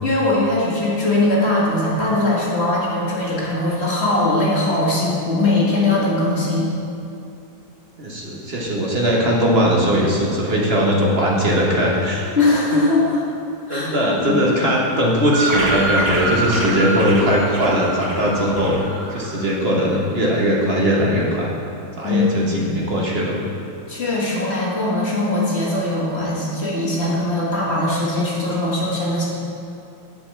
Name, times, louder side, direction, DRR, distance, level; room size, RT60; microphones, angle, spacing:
voice 1, 0.0-6.7 12.4-13.2 13.7-13.9 14.2-14.4 22.0-22.8 23.9-29.3, left 2 dB, 35° left, -6 dB, 2.0 m, -20 dB
voice 2, 8.0-12.3 13.7-18.8 19.1-21.5 22.0-23.4, equal, 35° right, -3 dB, 1.3 m, -19 dB
sound 1, 15.3-19.7, right 1 dB, 80° right, 2.4 m, -25 dB
8.4 x 5.5 x 7.2 m, 2.6 s
omnidirectional pair, 2.2 m